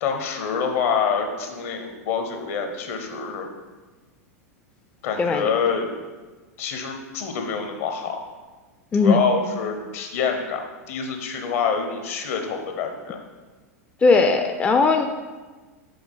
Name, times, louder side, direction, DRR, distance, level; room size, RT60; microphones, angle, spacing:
voice 1, 0.0-3.5 5.0-5.9 6.6-8.2 9.0-13.2, left 6 dB, 60° left, 5 dB, 0.9 m, -26 dB
voice 2, 5.2-5.5 8.9-9.2 14.0-15.1, left 4 dB, 15° left, 5 dB, 0.4 m, -18 dB
7.0 x 3.5 x 3.9 m, 1.3 s
hypercardioid pair, 95°, 9 cm